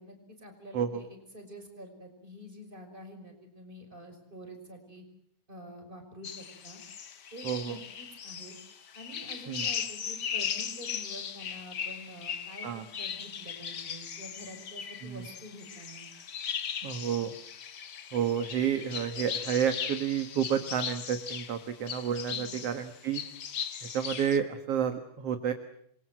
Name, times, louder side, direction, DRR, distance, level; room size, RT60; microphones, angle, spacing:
voice 1, 0.0-5.0 5.5-6.8 7.3-8.5 8.9-16.1 22.3-22.6, equal, 15° right, 5 dB, 6.0 m, -47 dB
sound 1, 6.2-24.4, left 8 dB, 50° left, 1.4 m, -38 dB
voice 2, 7.4-7.8 9.5-9.7 12.6-12.9 15.0-15.2 16.8-17.3 18.1-23.2 23.9-25.5, right 8 dB, 60° right, 8 dB, 2.4 m, -30 dB
28.0 x 23.5 x 7.7 m, 0.70 s
omnidirectional pair, 3.3 m